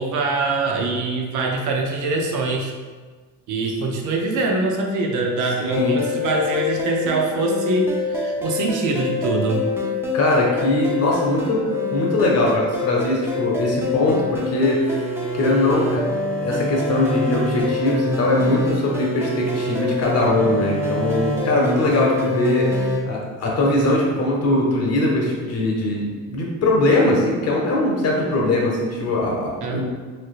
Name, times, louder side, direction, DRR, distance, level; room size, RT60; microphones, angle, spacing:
voice 1, 0.0-2.7 3.5-9.7 29.6-29.8, right 3 dB, 65° right, 2 dB, 0.6 m, -23 dB
voice 2, 5.6-6.0 10.1-11.6 11.9-16.0 16.4-29.8, left 1 dB, 50° left, -2 dB, 0.9 m, -21 dB
sound 1, 5.7-23.0, left 3 dB, 10° right, 0.4 m, -25 dB
3.3 x 2.9 x 2.4 m, 1.4 s
cardioid pair, 100°, 32 cm